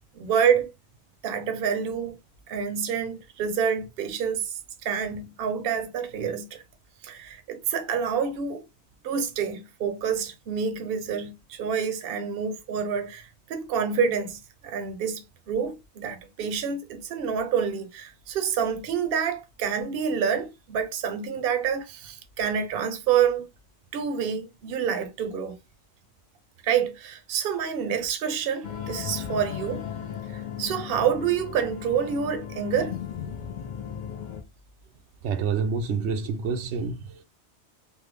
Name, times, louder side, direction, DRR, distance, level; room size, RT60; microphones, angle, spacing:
voice 1, 0.1-0.7 1.2-2.2 2.5-4.5 4.8-6.6 7.0-8.6 9.0-23.5 23.9-25.6 26.6-29.9 30.3-33.0, right 7 dB, 60° right, 0.8 m, -27 dB
sound 1, 28.6-34.4, left 8 dB, 55° left, 0.6 m, -36 dB
voice 2, 35.2-37.2, right 5 dB, 85° right, 0.9 m, -28 dB
3.3 x 2.1 x 3.2 m
omnidirectional pair, 1.1 m